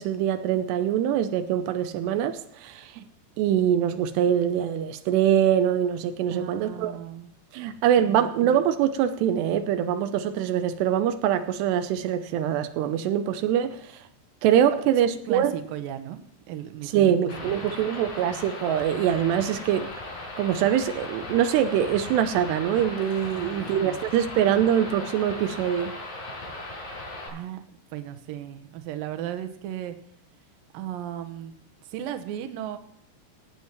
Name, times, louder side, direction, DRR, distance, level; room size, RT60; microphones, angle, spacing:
voice 1, 0.0-3.0 3.4-6.9 7.5-13.9 14.4-15.6 16.9-19.9 20.4-25.9, right 9 dB, 90° right, 2.9 m, -24 dB
voice 2, 6.3-7.3 8.1-8.3 15.0-16.2 16.5-17.1 17.4-17.7 23.3-24.0 27.3-27.6 27.9-30.0 30.7-31.5 31.9-32.8, right 11 dB, 70° right, 2.5 m, -36 dB
sound 1, 17.3-27.3, left 2 dB, 55° left, 7.5 m, -38 dB
17.0 x 9.1 x 4.5 m
omnidirectional pair, 4.9 m